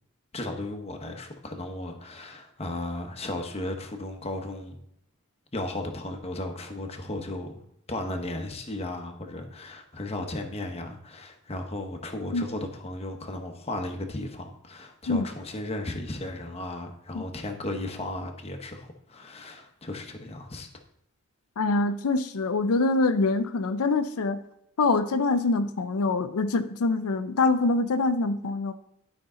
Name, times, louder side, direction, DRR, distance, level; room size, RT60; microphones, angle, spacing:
voice 1, 0.3-4.8 5.5-7.6 7.9-20.7, left 1 dB, 30° left, 4 dB, 0.9 m, -35 dB
voice 2, 21.6-24.4 24.8-28.7, left 3 dB, 90° left, 9 dB, 0.5 m, -24 dB
11.5 x 5.4 x 3.7 m, 0.73 s
head